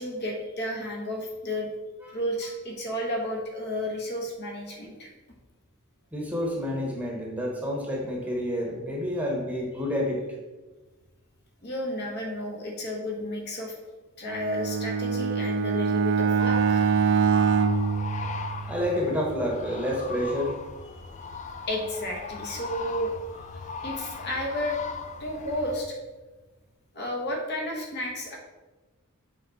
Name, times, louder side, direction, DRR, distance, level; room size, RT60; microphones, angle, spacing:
voice 1, 0.0-1.7 2.1-5.1 11.6-13.8 14.2-16.8 21.7-23.1 23.8-24.8 25.2-26.0 26.9-28.4, left 1 dB, 50° left, 0 dB, 1.4 m, -32 dB
voice 2, 6.1-10.2 18.7-20.5, equal, 5° right, -1 dB, 1.0 m, -29 dB
Bowed string instrument, 14.3-18.9, right 5 dB, 60° right, 0.4 m, -24 dB
sound 1, 16.4-25.8, left 4 dB, 35° left, 0.4 m, -39 dB
8.0 x 3.6 x 4.2 m, 1.2 s
head